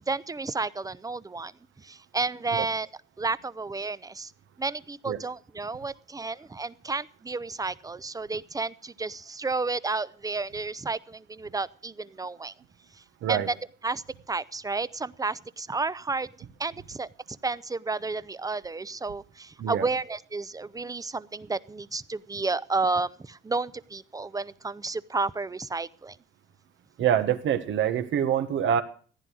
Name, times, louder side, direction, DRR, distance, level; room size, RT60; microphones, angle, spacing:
voice 1, 0.1-1.5 1.8-2.9 3.2-4.3 4.6-12.5 12.9-13.0 13.3-13.6 13.8-16.3 16.6-26.2, right 3 dB, 20° right, 0.6 m, -31 dB
voice 2, 27.0-28.8, right 9 dB, 75° right, 1.5 m, -25 dB
15.0 x 10.0 x 6.2 m
cardioid pair, 90°, 20 cm